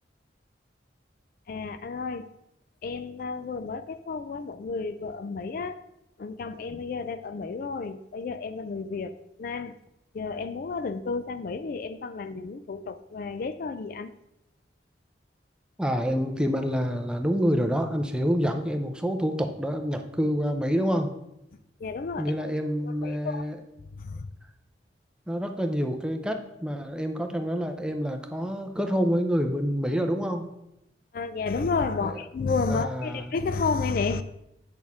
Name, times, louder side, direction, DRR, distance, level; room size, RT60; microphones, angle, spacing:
voice 1, 1.5-2.4 2.8-5.9 6.2-9.8 10.1-14.1 21.8-22.3 22.8-23.4 23.9-24.3 31.1-34.2, left 4 dB, 50° left, 0.3 m, -31 dB
voice 2, 15.8-21.1 22.2-23.6 25.3-30.5 32.0-32.1 32.7-33.2, equal, 5° right, 0.6 m, -27 dB
8.7 x 6.2 x 3.6 m
head